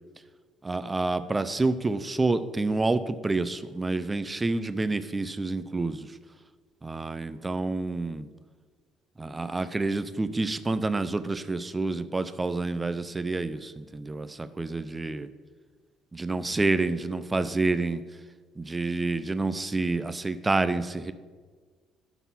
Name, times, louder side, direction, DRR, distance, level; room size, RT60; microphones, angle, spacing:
voice 1, 0.6-6.1 6.8-8.3 9.2-15.3 16.1-18.0 18.6-21.1, right 3 dB, 20° right, 12 dB, 0.5 m, -28 dB
11.0 x 4.1 x 5.5 m, 1.5 s
hypercardioid pair, 60°, 0 cm